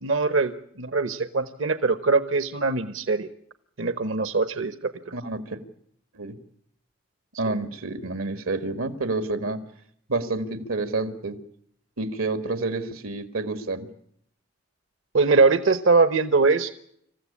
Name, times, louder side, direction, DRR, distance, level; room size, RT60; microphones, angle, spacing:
voice 1, 0.0-3.3 3.8-4.9 15.1-16.7, right 4 dB, 65° right, 12 dB, 1.0 m, -22 dB
voice 2, 5.1-5.6 6.1-6.4 7.4-9.6 10.1-11.4 12.0-13.9, right 3 dB, 85° right, 10 dB, 1.8 m, -29 dB
26.5 x 15.0 x 8.5 m, 0.70 s
head